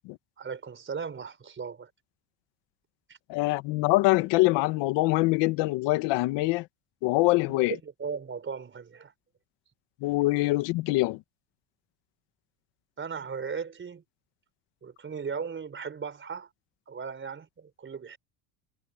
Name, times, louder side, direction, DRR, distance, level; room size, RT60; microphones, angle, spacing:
voice 1, 0.4-1.9 3.1-3.2 7.5-9.1 13.0-14.0 14.8-16.5 16.9-18.2, right 6 dB, 30° right, 4.6 m, -37 dB
voice 2, 3.3-6.7 7.0-7.8 10.0-11.2, left 20 dB, 80° left, 1.6 m, -24 dB
cardioid pair, 115°, 42 cm